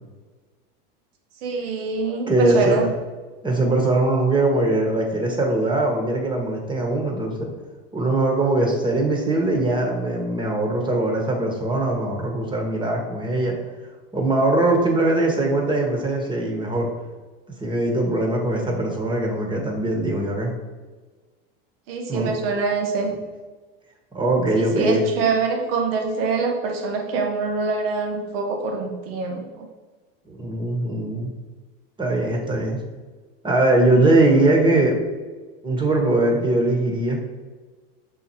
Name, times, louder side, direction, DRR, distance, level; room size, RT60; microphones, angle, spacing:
voice 1, 1.4-2.9 21.9-23.1 24.6-29.7, right 4 dB, 75° right, 2 dB, 1.3 m, -24 dB
voice 2, 2.3-2.9 3.4-7.5 7.9-13.5 14.1-16.9 17.6-20.5 22.1-22.3 24.1-25.0 30.3-31.3 32.0-32.8 33.4-35.0 35.6-37.2, right 2 dB, 15° right, 1 dB, 1.5 m, -21 dB
6.1 x 4.4 x 4.6 m, 1.3 s
supercardioid pair, 125°, 29 cm